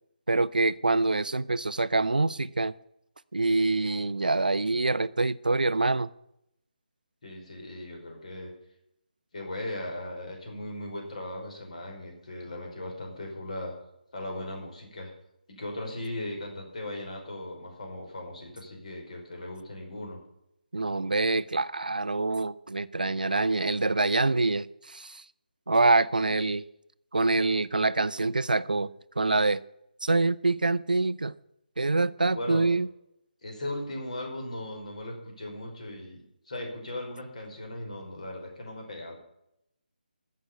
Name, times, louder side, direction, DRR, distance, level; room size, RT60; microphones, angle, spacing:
voice 1, 0.3-2.7 3.3-6.1 20.7-25.2 25.7-26.6 27.1-28.9 29.2-29.6 30.0-31.3 31.8-32.9, right 3 dB, 65° right, 16 dB, 0.6 m, -25 dB
voice 2, 7.2-8.5 9.3-13.7 14.1-15.1 15.5-20.2 26.2-26.5 32.3-32.6 33.4-36.2 36.4-39.2, left 1 dB, 50° left, 2 dB, 5.1 m, -38 dB
15.0 x 6.7 x 8.4 m, 0.80 s
figure-of-eight pair, 150°, 5 cm